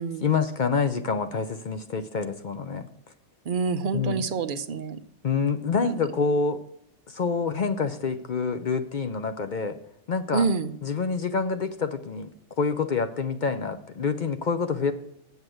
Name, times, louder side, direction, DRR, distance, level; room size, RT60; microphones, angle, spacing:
voice 1, 0.2-2.9 3.9-4.3 5.2-6.6 7.1-9.8 10.1-10.5 10.8-12.3 12.6-14.9, left 5 dB, 50° left, 9 dB, 0.6 m, -27 dB
voice 2, 3.4-5.0 5.8-6.0 10.3-10.7, right 4 dB, 50° right, 10 dB, 0.8 m, -27 dB
8.0 x 7.3 x 7.8 m, 0.79 s
omnidirectional pair, 1.2 m